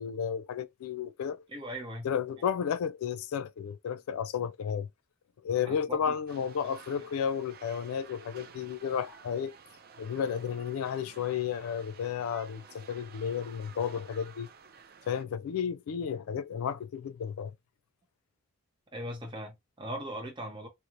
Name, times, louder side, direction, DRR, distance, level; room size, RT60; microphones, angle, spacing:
voice 1, 0.0-1.4 2.0-4.9 5.4-9.6 10.0-14.5 15.1-17.5, left 7 dB, 75° left, 0.3 m, -32 dB
voice 2, 1.5-2.1 5.6-6.1 6.6-6.8 18.9-20.7, right 1 dB, 20° right, 0.7 m, -39 dB
sound 1, 6.3-15.2, right 6 dB, 45° right, 0.3 m, -53 dB
3.0 x 2.0 x 2.5 m
head